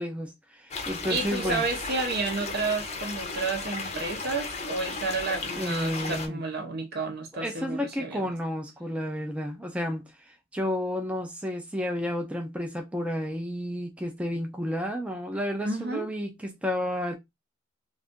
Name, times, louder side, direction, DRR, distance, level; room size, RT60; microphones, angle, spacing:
voice 1, 0.0-1.6 5.5-6.4 7.3-17.1, equal, 5° right, 0.4 m, -31 dB
sound 1, 0.7-6.3, left 3 dB, 35° left, 0.6 m, -35 dB
voice 2, 1.1-8.3 15.6-16.1, right 3 dB, 50° right, 0.7 m, -31 dB
2.5 x 2.4 x 3.6 m
head